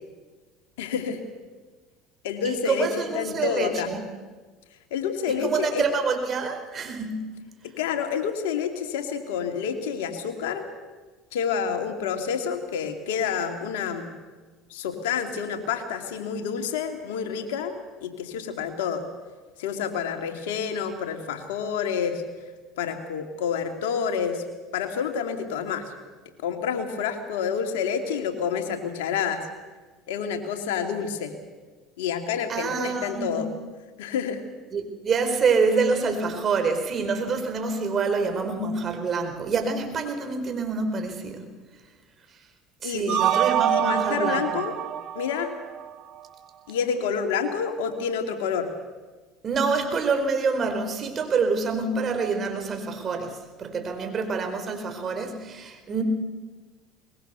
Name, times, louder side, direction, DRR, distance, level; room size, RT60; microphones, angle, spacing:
voice 1, 0.8-1.2 2.2-2.9 3.1-3.9 4.9-5.8 7.6-10.6 11.3-14.1 14.7-17.7 18.0-19.0 19.6-22.2 22.8-24.4 24.7-25.9 26.4-29.5 30.1-31.3 32.0-33.5 34.0-34.4 42.8-43.2 43.7-44.7 45.1-45.5 46.7-48.7, left 7 dB, 80° left, 5 dB, 2.5 m, -28 dB
voice 2, 2.4-4.0 5.3-7.3 32.5-33.4 34.7-41.5 42.8-44.6 49.4-56.0, right 4 dB, 40° right, 6 dB, 4.5 m, -26 dB
sound 1, 43.1-46.2, right 11 dB, 55° right, 1.2 m, -25 dB
22.5 x 21.0 x 6.9 m, 1.3 s
hypercardioid pair, 80°, 0 cm